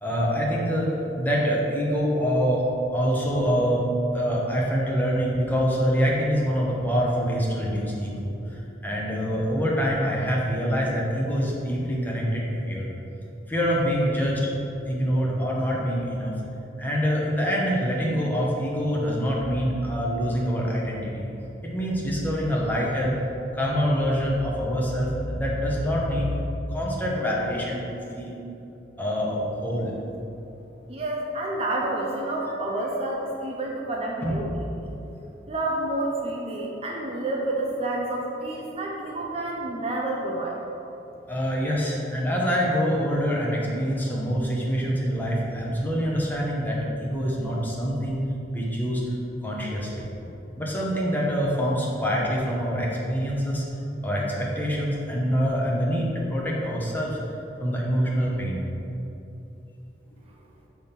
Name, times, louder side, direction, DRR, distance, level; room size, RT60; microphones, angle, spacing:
voice 1, 0.0-0.9 1.2-2.6 2.9-3.9 4.1-12.9 13.5-14.4 14.9-16.3 16.8-21.3 21.6-23.1 23.5-26.3 26.7-28.4 29.0-29.9 34.2-34.4 41.3-48.2 48.5-49.0 49.4-50.1 50.6-53.6 54.0-57.2 57.6-58.6, equal, 10° left, -4 dB, 1.0 m, -25 dB
voice 2, 30.9-34.9 35.5-40.6, right 2 dB, 35° right, -2 dB, 0.6 m, -29 dB
6.2 x 3.6 x 5.8 m, 2.9 s
head